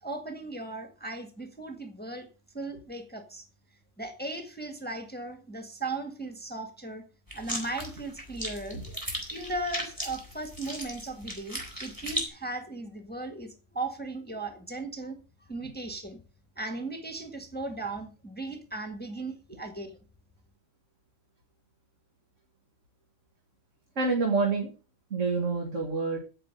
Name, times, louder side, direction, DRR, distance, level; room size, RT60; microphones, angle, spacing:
voice 1, 0.0-2.3 2.5-3.4 4.0-7.0 7.3-8.8 9.3-15.1 15.5-16.2 16.6-19.9, right 2 dB, 5° left, 5 dB, 1.6 m, -37 dB
sound 1, 7.3-12.2, equal, 15° right, 5.4 m, -36 dB
voice 2, 24.0-24.7 25.1-26.2, right 4 dB, 65° right, 1 dB, 2.5 m, -27 dB
15.5 x 6.2 x 6.6 m, 0.36 s
omnidirectional pair, 1.4 m